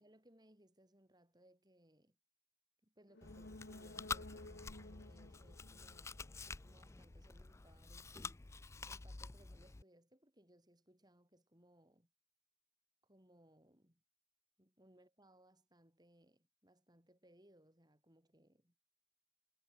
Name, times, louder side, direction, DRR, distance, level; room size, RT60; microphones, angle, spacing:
voice 1, 0.0-2.2 2.8-8.3 8.8-12.1 13.0-14.0 14.6-18.7, right 1 dB, 25° right, 6.5 m, -68 dB
sound 1, 3.1-6.8 7.1-7.2, left 2 dB, 90° left, 1.8 m, -55 dB
Chewing mastication, 3.2-9.8, left 4 dB, 15° left, 0.4 m, -49 dB
head